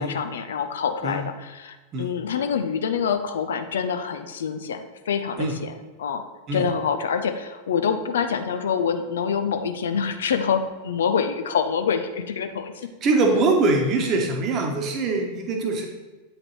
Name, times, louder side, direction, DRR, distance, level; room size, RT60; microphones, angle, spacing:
voice 1, 0.0-5.7 6.0-6.2 6.5-12.7, left 6 dB, 65° left, 8 dB, 0.5 m, -26 dB
voice 2, 13.0-15.9, right 3 dB, 35° right, 2 dB, 1.1 m, -22 dB
8.3 x 4.9 x 3.1 m, 1.2 s
figure-of-eight pair, 90°, 0 cm